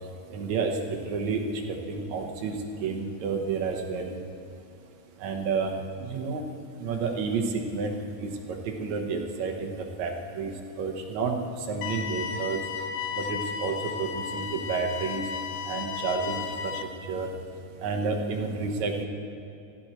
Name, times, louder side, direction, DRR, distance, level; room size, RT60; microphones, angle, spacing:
voice 1, 0.3-1.6 1.9-2.5 2.8-4.1 5.2-5.7 6.0-6.4 6.8-7.4 7.7-8.3 8.7-9.7 10.0-10.5 10.8-11.4 11.7-12.6 13.2-15.2 15.7-16.7 17.1-17.3 17.8-19.1, right 4 dB, 65° right, 2 dB, 2.0 m, -30 dB
sound 1, 11.8-16.8, left 7 dB, 75° left, 2.3 m, -34 dB
16.5 x 13.0 x 4.4 m, 2.8 s
omnidirectional pair, 4.1 m